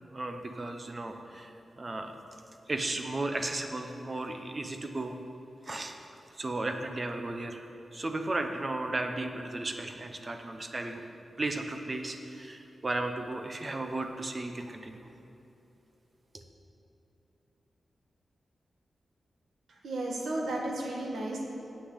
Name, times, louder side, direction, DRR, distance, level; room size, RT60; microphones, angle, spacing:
voice 1, 0.1-1.5 1.8-2.1 2.7-5.2 5.7-5.9 6.4-7.6 7.9-11.0 11.4-15.0 16.3-16.4, right 2 dB, 25° right, 5 dB, 0.7 m, -35 dB
voice 2, 19.8-21.4, right 1 dB, 90° right, -1 dB, 1.7 m, -33 dB
7.9 x 6.7 x 8.1 m, 2.9 s
wide cardioid pair, 165°, 0 cm